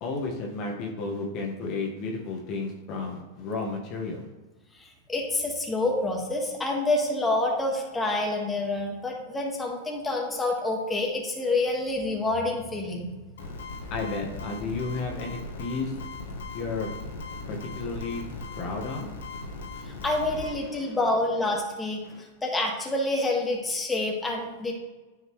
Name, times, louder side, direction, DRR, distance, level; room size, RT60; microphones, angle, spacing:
voice 1, 0.0-4.3 13.9-16.0 16.5-16.9 17.5-18.2 18.6-19.1 20.3-21.0 22.0-22.2, left 3 dB, 45° left, 0 dB, 1.4 m, -33 dB
voice 2, 4.7-13.1 19.9-22.0 22.4-24.7, left 2 dB, 10° left, 0 dB, 1.6 m, -27 dB
sound 1, 13.4-20.5, left 3 dB, 75° left, 1.5 m, -38 dB
9.5 x 5.6 x 3.1 m, 1.2 s
hypercardioid pair, 110°, 0 cm